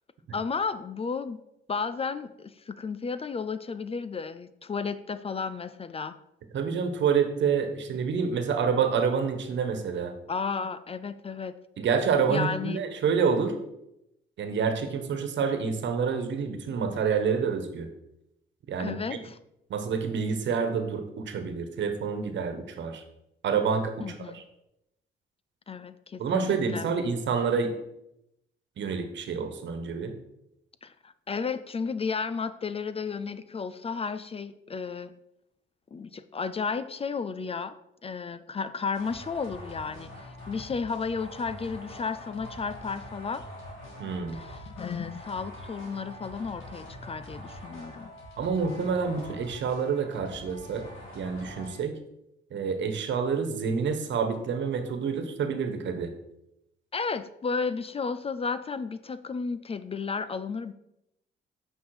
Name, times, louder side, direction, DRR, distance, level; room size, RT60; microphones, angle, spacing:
voice 1, 0.3-1.4 1.7-6.2 10.3-11.5 12.3-12.9 18.8-19.4 24.0-24.4 25.7-26.9 30.8-35.1 35.9-37.8 38.0-43.4 44.3-48.1 49.2-49.3 56.9-60.7, left 5 dB, 30° left, 13 dB, 0.4 m, -33 dB
voice 2, 6.5-10.1 11.8-13.6 14.4-17.9 18.7-19.0 19.7-23.0 23.4-24.4 26.2-27.7 28.8-30.1 44.0-44.4 48.4-50.9 51.1-51.9 52.5-56.1, right 6 dB, 65° right, 8 dB, 1.3 m, -28 dB
sound 1, 38.9-51.8, left 1 dB, 85° left, 3.4 m, -44 dB
8.6 x 5.5 x 4.9 m, 0.84 s
cardioid pair, 90°, 20 cm